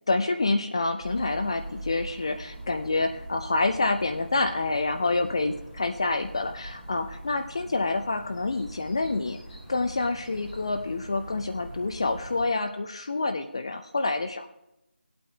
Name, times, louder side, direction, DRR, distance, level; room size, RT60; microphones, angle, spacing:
voice 1, 0.1-9.4 9.7-14.5, left 3 dB, 25° left, 6 dB, 0.4 m, -27 dB
sound 1, 1.0-12.4, right 1 dB, ahead, 0.9 m, -42 dB
19.0 x 8.6 x 2.3 m, 0.89 s
figure-of-eight pair, 165°, 6 cm